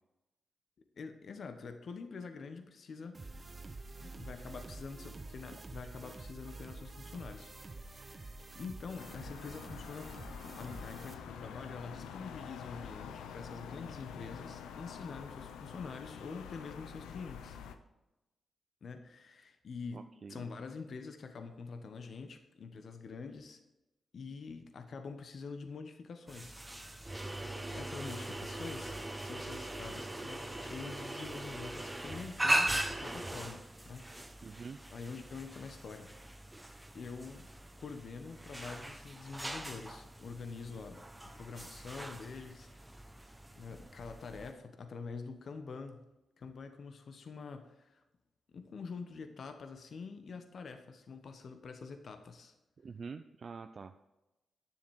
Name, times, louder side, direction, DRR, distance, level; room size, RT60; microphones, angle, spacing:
voice 1, 1.0-3.5 4.0-10.1 10.4-17.6 18.8-20.0 20.3-23.6 24.1-27.0 27.7-34.4 34.9-36.1 36.9-37.5 37.8-41.0 41.3-42.7 43.6-46.0 46.4-48.0 48.5-52.5, left 4 dB, 65° left, 7 dB, 1.0 m, -46 dB
sound 1, 3.1-11.1, right 2 dB, 40° right, 1.1 m, -48 dB
sound 2, 9.0-17.8, left 7 dB, 90° left, 0.6 m, -47 dB
voice 2, 19.9-20.5 34.4-34.8 52.8-53.9, right 5 dB, 55° right, 7 dB, 0.5 m, -46 dB
sound 3, 26.3-44.5, right 1 dB, 15° right, 1.0 m, -40 dB
10.0 x 7.1 x 4.8 m, 0.99 s
supercardioid pair, 50°, 0 cm